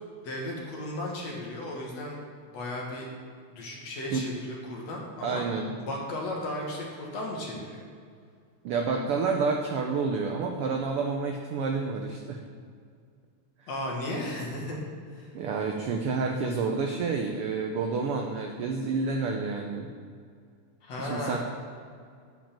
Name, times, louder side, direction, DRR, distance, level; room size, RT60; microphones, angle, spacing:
voice 1, 0.2-2.2 2.5-3.1 3.5-5.4 5.8-7.8 13.7-14.8 15.1-15.3 20.8-21.4, left 1 dB, 65° left, -2 dB, 2.6 m, -35 dB
voice 2, 5.2-5.7 8.6-12.4 15.3-19.9 21.0-21.4, right 4 dB, 80° right, 2 dB, 1.2 m, -29 dB
9.0 x 5.1 x 7.2 m, 2.1 s
omnidirectional pair, 3.3 m